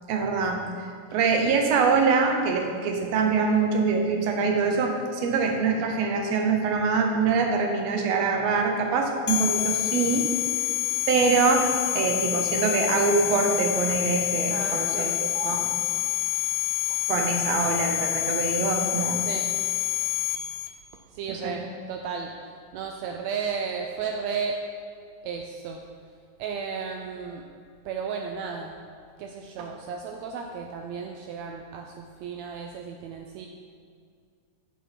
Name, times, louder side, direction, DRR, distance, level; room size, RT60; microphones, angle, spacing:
voice 1, 0.1-0.6 1.1-10.2 11.1-11.7 12.0-15.6 17.1-19.2 21.3-21.5, right 4 dB, 70° right, 3 dB, 1.8 m, -24 dB
sound 1, 9.3-20.7, left 13 dB, 75° left, 1.7 m, -27 dB
voice 2, 14.5-15.2 19.2-19.5 21.1-22.3 22.7-24.6 25.2-25.8 26.4-27.4 27.8-28.8 29.2-33.5, right 6 dB, 85° right, 3 dB, 1.5 m, -34 dB
8.1 x 7.3 x 4.3 m, 2.2 s
omnidirectional pair, 3.6 m